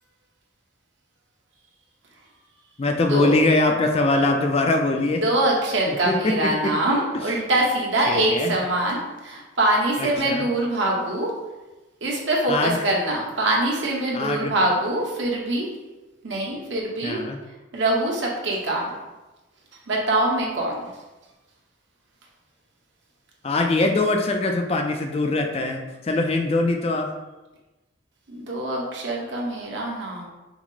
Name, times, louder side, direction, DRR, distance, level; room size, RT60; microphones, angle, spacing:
voice 1, 2.8-5.2 5.9-6.7 8.1-8.5 10.0-10.5 12.5-12.8 14.1-14.5 17.0-17.4 23.4-27.1, left 2 dB, 30° left, 4 dB, 0.3 m, -22 dB
voice 2, 5.2-11.3 12.0-15.7 16.2-17.2 17.7-18.9 19.9-20.9 28.3-30.3, right 1 dB, 60° right, -2 dB, 1.0 m, -24 dB
5.9 x 2.0 x 4.0 m, 1.1 s
head